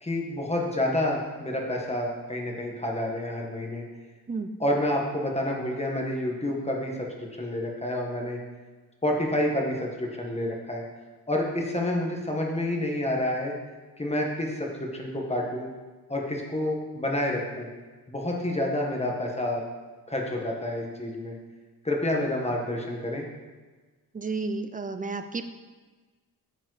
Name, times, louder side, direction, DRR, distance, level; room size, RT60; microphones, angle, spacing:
voice 1, 0.0-3.8 4.6-7.1 7.4-8.4 9.0-10.8 11.3-13.5 14.0-15.7 16.1-17.7 18.1-19.6 20.1-21.3 21.8-23.2, left 1 dB, 15° left, 0 dB, 1.4 m, -28 dB
voice 2, 24.1-25.4, right 3 dB, 20° right, 9 dB, 0.5 m, -31 dB
9.5 x 7.2 x 4.0 m, 1.3 s
wide cardioid pair, 160°, 38 cm